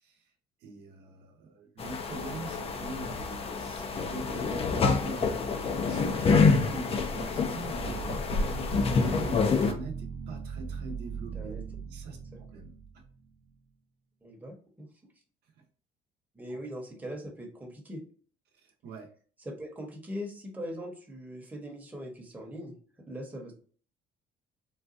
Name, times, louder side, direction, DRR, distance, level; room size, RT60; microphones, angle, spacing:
voice 1, 0.6-11.5 11.9-12.7 16.5-16.6 18.6-19.1, right 3 dB, 70° right, 3 dB, 0.8 m, -42 dB
sound 1, 1.8-9.7, left 4 dB, 35° left, 0.5 m, -27 dB
sound 2, 7.7-13.5, right 5 dB, 35° right, 0.6 m, -40 dB
voice 2, 14.2-14.9 16.3-18.0 19.4-22.8 23.1-23.5, equal, 10° right, 0 dB, 0.9 m, -41 dB
3.9 x 2.2 x 2.5 m, 0.42 s
cardioid pair, 110°, 17 cm